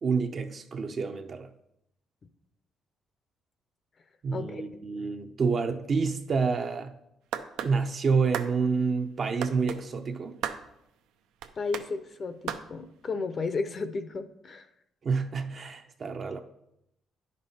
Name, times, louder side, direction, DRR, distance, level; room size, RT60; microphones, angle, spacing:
voice 1, 0.0-1.5 4.2-6.9 7.6-10.3 15.0-16.4, right 5 dB, 45° right, 0.6 m, -28 dB
voice 2, 4.3-4.8 11.6-14.7, left 4 dB, 40° left, 0.6 m, -33 dB
sound 1, 7.3-7.7 8.3-8.5 9.4-9.8 10.4-10.6 11.4-11.9 12.5-12.7, right 9 dB, 90° right, 0.6 m, -33 dB
10.5 x 5.4 x 4.1 m
cardioid pair, 100°, 0 cm